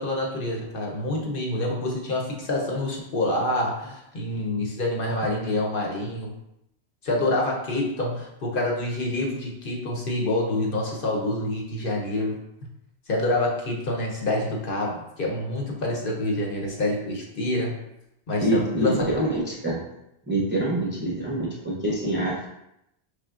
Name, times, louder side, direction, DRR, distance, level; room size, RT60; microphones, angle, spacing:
voice 1, 0.0-6.3 7.0-12.4 13.1-17.8 18.3-19.1, left 1 dB, 60° left, -1 dB, 0.9 m, -27 dB
voice 2, 18.4-19.8 20.3-22.5, right 1 dB, 15° right, -4 dB, 0.5 m, -25 dB
5.0 x 3.2 x 2.4 m, 0.83 s
omnidirectional pair, 1.1 m